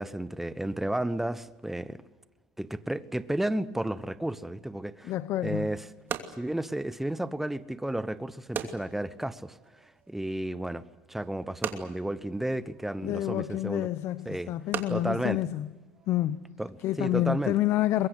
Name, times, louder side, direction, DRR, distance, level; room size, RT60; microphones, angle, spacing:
voice 1, 0.0-2.0 2.6-5.1 5.4-5.9 6.4-9.6 10.1-13.9 14.2-14.5 14.9-15.4 16.6-17.5, right 1 dB, 5° right, 1.0 m, -32 dB
voice 2, 5.0-5.7 13.0-15.7 16.1-16.5 16.8-18.1, left 14 dB, 60° left, 0.8 m, -28 dB
sound 1, 5.0-16.4, right 8 dB, 45° right, 2.8 m, -42 dB
23.0 x 22.0 x 8.2 m
supercardioid pair, 105°, 5 cm